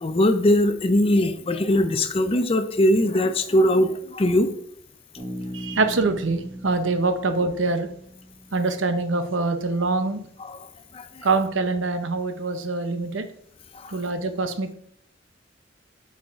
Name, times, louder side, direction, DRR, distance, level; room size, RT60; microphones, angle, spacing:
voice 1, 0.0-4.5 10.9-11.1 13.8-13.9, left 1 dB, 30° left, 9 dB, 0.5 m, -20 dB
Bass guitar, 5.2-8.8, equal, 25° right, 3.2 m, -38 dB
voice 2, 5.5-7.9 8.5-10.3 11.2-13.2 13.9-14.7, right 3 dB, 85° right, 8 dB, 0.8 m, -24 dB
8.3 x 4.8 x 3.6 m, 0.66 s
head